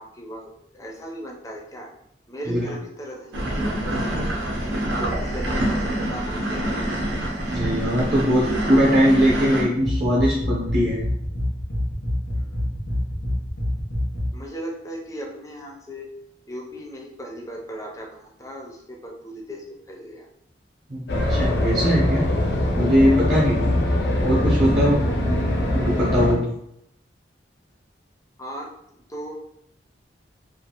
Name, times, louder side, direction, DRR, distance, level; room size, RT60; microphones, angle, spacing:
voice 1, 0.0-1.9 2.3-4.4 5.0-7.3 12.3-12.6 14.3-16.1 16.5-20.3 28.4-29.4, right 1 dB, 20° left, 0 dB, 0.4 m, -38 dB
sound 1, 3.3-9.6, right 1 dB, 85° right, 0.6 m, -26 dB
voice 2, 7.5-11.0 20.9-22.2 22.7-23.7 24.2-25.0 25.7-26.4, equal, 40° right, -5 dB, 0.6 m, -20 dB
sound 2, 9.8-14.4, left 1 dB, 90° left, 0.9 m, -26 dB
sound 3, 21.1-26.3, left 1 dB, 75° left, 0.5 m, -22 dB
2.6 x 2.4 x 2.7 m, 0.75 s
head